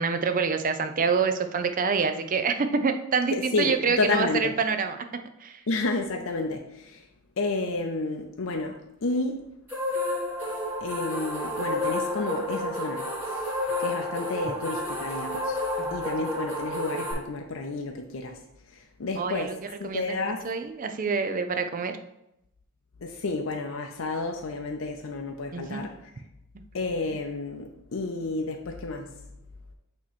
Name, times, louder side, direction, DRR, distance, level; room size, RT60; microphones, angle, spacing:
voice 1, 0.0-5.0 5.4-5.6 15.8-16.0 19.2-19.6 19.8-20.2 20.4-21.9 25.5-25.9, right 5 dB, 40° right, 8 dB, 0.5 m, -26 dB
voice 2, 3.3-4.5 5.7-7.1 7.4-9.5 10.8-15.6 15.9-18.4 18.7-20.4 23.0-26.1 26.7-29.1, left 3 dB, 70° left, 3 dB, 0.6 m, -31 dB
sound 1, 9.7-17.1, left 1 dB, 10° right, 1.8 m, -30 dB
8.5 x 3.0 x 4.2 m, 0.84 s
head